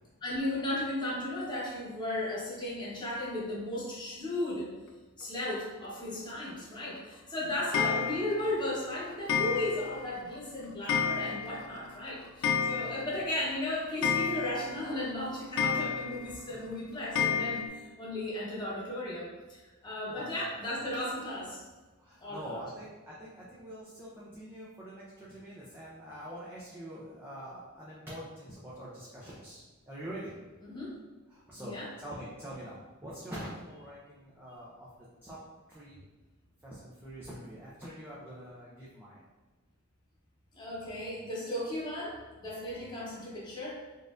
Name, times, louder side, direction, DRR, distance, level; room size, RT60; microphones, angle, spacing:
voice 1, 0.2-4.7 5.2-21.6 22.2-22.6 30.6-30.9 31.5-31.9 40.5-43.8, left 1 dB, 20° left, -8 dB, 0.9 m, -35 dB
Clock, 7.7-8.5 9.3-10.0 10.3-10.4 10.9-11.7 11.9-12.0 12.2-13.2 13.5-13.6 14.0-14.8 15.6-16.3 17.2-17.7, left 7 dB, 60° left, 0.4 m, -30 dB
voice 2, 20.1-20.7 22.0-30.3 31.3-31.7 32.0-32.8 33.0-35.4 35.7-36.0 36.6-39.2, equal, 10° right, -7 dB, 0.5 m, -45 dB
4.1 x 2.5 x 2.4 m, 1.2 s
head